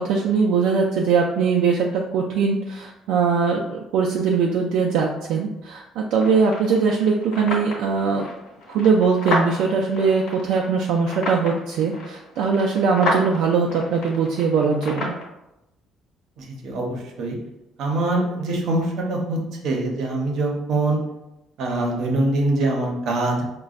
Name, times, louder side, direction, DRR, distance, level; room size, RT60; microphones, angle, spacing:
voice 1, 0.0-8.3 8.7-15.1, right 5 dB, 75° right, -1 dB, 0.3 m, -21 dB
sound 1, 6.2-15.2, left 2 dB, 70° left, 1.1 m, -31 dB
voice 2, 16.4-17.4 17.8-19.4 19.6-21.0 21.6-23.4, right 2 dB, 55° right, 0 dB, 0.7 m, -23 dB
5.1 x 2.2 x 2.4 m, 0.90 s
cardioid pair, 180°, 0 cm